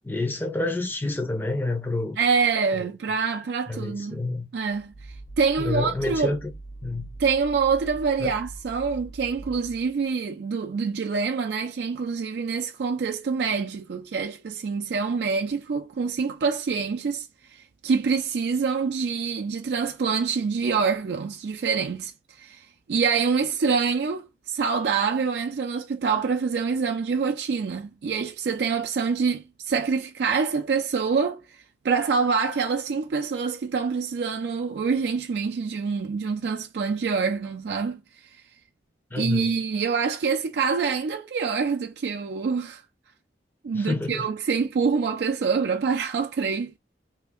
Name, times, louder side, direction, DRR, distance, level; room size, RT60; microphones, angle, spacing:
voice 1, 0.0-2.2 2.8-2.9 3.7-4.5 5.6-6.5 6.8-7.1 8.2-8.3 39.1-39.5 43.7-44.3, left 2 dB, 10° left, 0.5 m, -28 dB
voice 2, 2.2-4.2 4.5-4.9 5.4-6.4 7.2-22.1 22.4-31.4 31.8-38.0 39.2-42.8 43.6-46.8, right 5 dB, 65° right, 0.4 m, -26 dB
sound 1, 4.6-10.1, right 2 dB, 35° right, 0.7 m, -42 dB
2.8 x 2.5 x 3.5 m
head